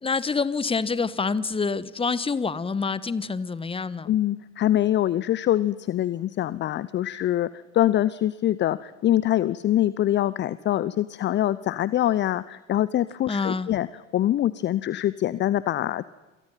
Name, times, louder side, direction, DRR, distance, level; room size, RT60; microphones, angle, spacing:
voice 1, 0.0-4.1 13.3-13.7, left 4 dB, 15° left, 18 dB, 1.3 m, -27 dB
voice 2, 4.1-13.9 14.1-16.1, left 12 dB, 30° left, 18 dB, 0.7 m, -24 dB
28.0 x 27.5 x 5.7 m, 1.2 s
figure-of-eight pair, 65°, 36 cm